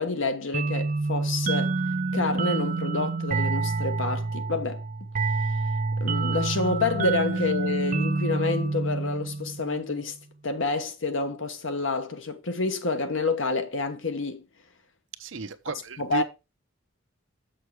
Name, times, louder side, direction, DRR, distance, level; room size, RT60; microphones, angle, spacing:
voice 1, 0.0-1.8 2.1-4.8 6.0-10.1 10.4-14.4 16.0-16.2, left 3 dB, 70° left, 1.2 m, -28 dB
sound 1, 0.5-9.9, right 3 dB, 40° right, 0.5 m, -28 dB
voice 2, 15.2-16.2, right 2 dB, 65° right, 0.8 m, -33 dB
7.0 x 6.4 x 4.7 m
head